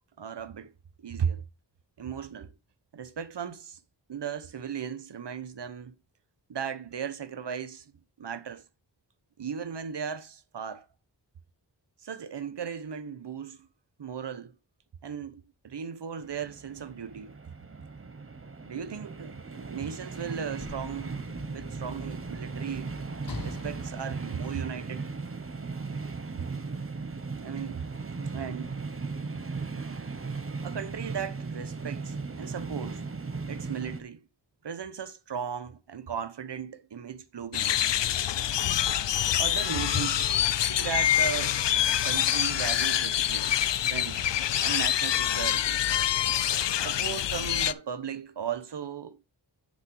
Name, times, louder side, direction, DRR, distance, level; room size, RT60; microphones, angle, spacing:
voice 1, 0.2-0.7 1.0-1.4 2.0-2.5 2.9-3.8 4.1-5.9 6.5-7.9 8.2-8.6 9.4-10.9 12.0-13.7 14.0-14.6 15.0-17.4 18.7-21.2 21.5-22.9 23.4-25.1 26.4-26.5 27.4-27.8 28.3-28.8 30.6-33.0 33.5-34.3 34.6-37.8 39.3-41.7 42.0-43.6 43.8-44.2 44.6-45.8 46.8-49.2, right 7 dB, 70° right, 1.0 m, -36 dB
sound 1, 16.2-34.0, right 4 dB, 30° right, 1.0 m, -37 dB
Sliding door / Slam, 19.9-25.2 26.1-26.3, left 3 dB, 55° left, 1.9 m, -45 dB
sound 2, 37.5-47.7, left 11 dB, 75° left, 0.5 m, -26 dB
6.6 x 5.3 x 5.4 m
wide cardioid pair, 75°, 43 cm